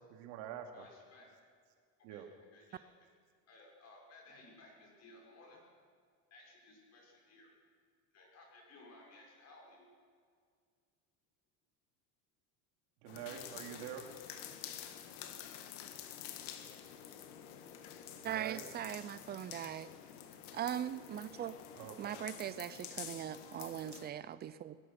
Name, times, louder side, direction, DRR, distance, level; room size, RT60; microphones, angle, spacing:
voice 1, 0.1-0.8 2.0-2.3 13.0-14.1 18.2-18.6 21.7-22.1, right 9 dB, 65° right, 4 dB, 2.9 m, -46 dB
voice 2, 0.7-1.3 2.1-3.1 3.5-5.6 6.3-7.5 8.1-9.9 13.8-14.0 22.0-22.3, left 2 dB, 35° left, -1 dB, 6.0 m, -59 dB
sound 1, 13.1-24.1, left 10 dB, 90° left, 2.1 m, -49 dB
voice 3, 18.2-19.9 20.5-21.6 22.0-24.8, right 10 dB, 25° right, 15 dB, 0.5 m, -40 dB
22.5 x 20.0 x 6.0 m, 2.1 s
cardioid pair, 165°, 43 cm